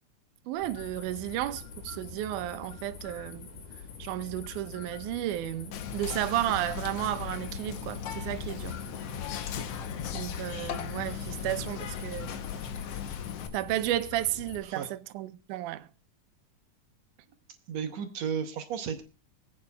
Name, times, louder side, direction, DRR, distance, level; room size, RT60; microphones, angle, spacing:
voice 1, 0.5-3.5 4.0-8.8 10.1-12.4 13.5-15.9, right 14 dB, 85° right, 2.2 m, -33 dB
sound 1, 0.6-14.6, left 6 dB, 85° left, 3.6 m, -45 dB
Whispering, 5.7-13.5, left 8 dB, 65° left, 1.7 m, -37 dB
voice 2, 17.7-19.0, right 7 dB, 65° right, 2.1 m, -34 dB
24.5 x 8.7 x 2.3 m
omnidirectional pair, 3.5 m